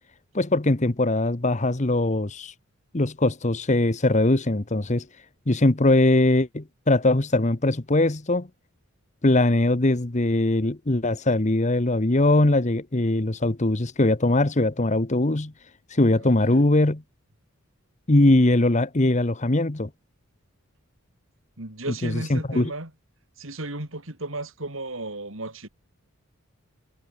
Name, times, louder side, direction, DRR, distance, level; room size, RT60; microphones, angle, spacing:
voice 1, 0.3-2.5 2.9-5.0 5.5-8.5 9.2-15.5 15.9-17.0 18.1-19.9 22.0-22.7, left 2 dB, 35° left, 1.1 m, -21 dB
voice 2, 15.9-16.7 21.6-22.9 23.4-25.7, right 2 dB, 65° right, 4.2 m, -35 dB
head